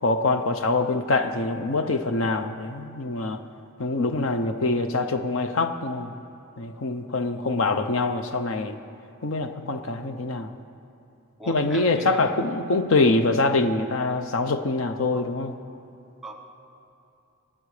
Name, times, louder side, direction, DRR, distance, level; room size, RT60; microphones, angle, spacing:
voice 1, 0.0-3.4 3.8-6.1 6.6-8.8 9.2-10.5 11.5-15.5, left 3 dB, 65° left, 8 dB, 0.7 m, -24 dB
voice 2, 11.4-12.2 15.1-15.3 16.2-16.3, equal, ahead, 3 dB, 1.2 m, -38 dB
24.0 x 8.7 x 5.0 m, 2.8 s
head